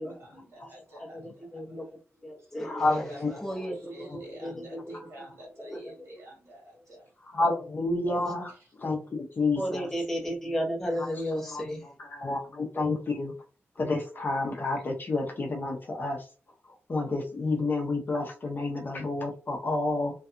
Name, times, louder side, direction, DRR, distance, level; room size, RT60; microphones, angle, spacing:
voice 1, 0.0-1.9 2.4-2.5 2.8-7.1 8.5-8.6, right 1 dB, 75° right, -3 dB, 1.3 m, -48 dB
voice 2, 0.7-1.8 2.2-2.9 3.4-4.9 5.6-5.9 9.6-11.8, equal, 5° left, -3 dB, 0.7 m, -34 dB
voice 3, 2.6-3.3 4.1-4.2 4.9-5.0 7.2-8.5 8.8-9.9 11.5-11.7 12.0-13.3 13.8-16.3 16.7-20.1, left 2 dB, 45° left, 1 dB, 0.6 m, -29 dB
2.6 x 2.3 x 2.4 m, 0.36 s
wide cardioid pair, 125°, 5 cm